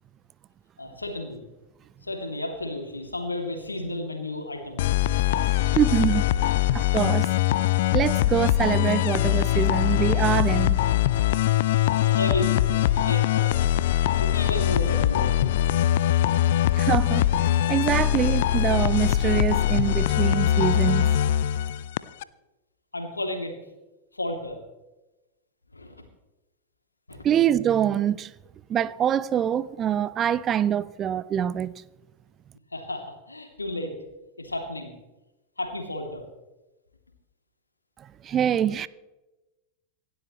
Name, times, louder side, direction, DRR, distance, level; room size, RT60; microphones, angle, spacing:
voice 1, 0.8-1.4 2.0-5.4 11.9-13.6 14.2-15.7 17.5-17.6 22.9-23.5 24.1-24.6 25.7-25.9 27.1-27.2 32.7-33.9 34.4-34.9 35.6-36.2, left 1 dB, 80° left, 2.8 m, -33 dB
sound 1, 4.8-22.2, left 12 dB, 55° left, 0.5 m, -22 dB
voice 2, 5.5-6.3 6.7-7.3 7.9-10.8 16.7-17.3 17.7-21.1 27.2-28.3 28.7-31.7 38.2-38.9, right 9 dB, 25° right, 0.5 m, -24 dB
27.0 x 12.0 x 3.1 m
figure-of-eight pair, 90°, 0 cm